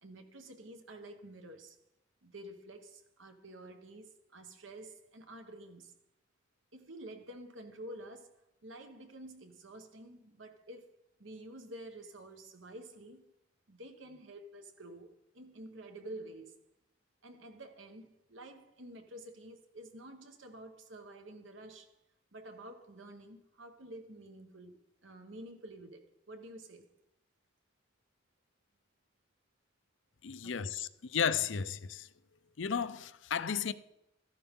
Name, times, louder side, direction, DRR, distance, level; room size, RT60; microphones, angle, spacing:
voice 1, 0.0-1.8 2.2-5.9 6.7-13.3 13.7-16.6 17.2-22.0 22.3-24.8 25.0-26.9 30.4-30.7, right 1 dB, 85° right, 1.4 m, -50 dB
voice 2, 30.2-32.1 32.6-33.7, left 7 dB, 75° left, 0.6 m, -34 dB
13.5 x 11.0 x 3.7 m
head